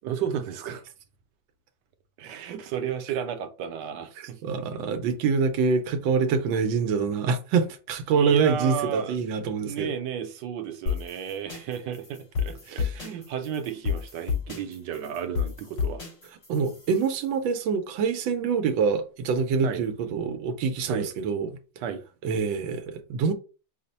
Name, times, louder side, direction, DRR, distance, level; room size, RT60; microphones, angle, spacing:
voice 1, 0.0-0.8 2.2-4.4 4.7-4.8 8.1-9.2 9.6-16.0 19.6-19.8 20.9-21.1 21.8-22.0, right 8 dB, 70° right, 1.2 m, -33 dB
voice 2, 4.2-9.9 12.7-12.9 16.5-21.5 22.2-23.3, right 5 dB, 90° right, 1.4 m, -25 dB
sound 1, 10.9-17.2, left 6 dB, 70° left, 3.6 m, -32 dB
5.7 x 2.1 x 4.0 m
omnidirectional pair, 2.0 m